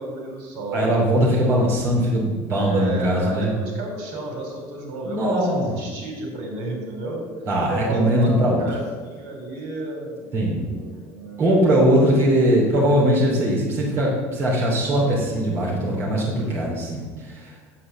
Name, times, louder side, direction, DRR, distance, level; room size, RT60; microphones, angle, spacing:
voice 1, 0.0-1.2 2.5-7.2 7.7-8.8 9.1-11.6, right 2 dB, 70° right, 1 dB, 4.2 m, -33 dB
voice 2, 0.7-3.5 5.1-5.7 7.4-8.6 10.3-10.6 11.4-17.5, equal, 30° right, -4 dB, 2.9 m, -20 dB
9.6 x 8.4 x 7.4 m, 1.4 s
cardioid pair, 165°, 8 cm